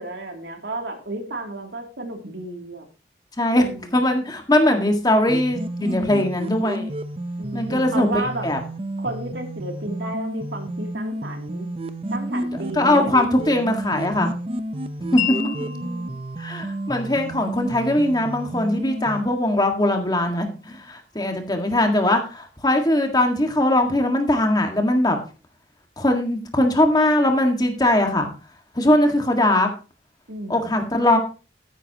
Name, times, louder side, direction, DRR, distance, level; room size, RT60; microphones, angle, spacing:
voice 1, 0.0-2.9 3.6-4.0 7.4-8.5 9.0-11.7 12.1-13.1 15.4-16.1 30.3-30.8, right 2 dB, 75° right, 3 dB, 2.8 m, -32 dB
voice 2, 3.4-3.7 3.9-6.9 7.5-8.6 12.7-14.3 15.1-15.2 16.4-25.2 26.0-28.3 28.7-29.7 30.5-31.2, left 1 dB, 20° left, 4 dB, 1.8 m, -20 dB
sound 1, 5.3-19.2, right 1 dB, 30° right, 0.7 m, -31 dB
Wind chime, 15.2-21.3, left 10 dB, 90° left, 2.1 m, -36 dB
14.0 x 10.0 x 2.9 m, 0.34 s
head